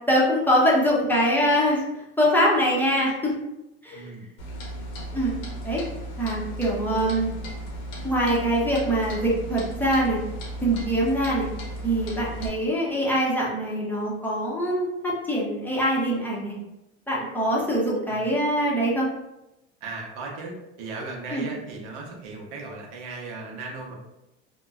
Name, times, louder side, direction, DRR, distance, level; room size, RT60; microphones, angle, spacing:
voice 1, 0.1-1.8 2.2-3.3 3.8-4.1 5.1-5.4 5.6-5.8 6.2-7.3 8.0-10.2 10.6-11.5 11.8-16.5 17.1-19.1 21.3-21.5, equal, 5° left, -6 dB, 0.7 m, -23 dB
voice 2, 3.9-4.3 18.1-18.3 19.8-23.9, right 3 dB, 70° right, -1 dB, 0.8 m, -37 dB
Clock, 4.4-12.5, right 1 dB, 75° left, 0.9 m, -35 dB
2.9 x 2.1 x 2.3 m, 0.91 s
supercardioid pair, 105°, 30 cm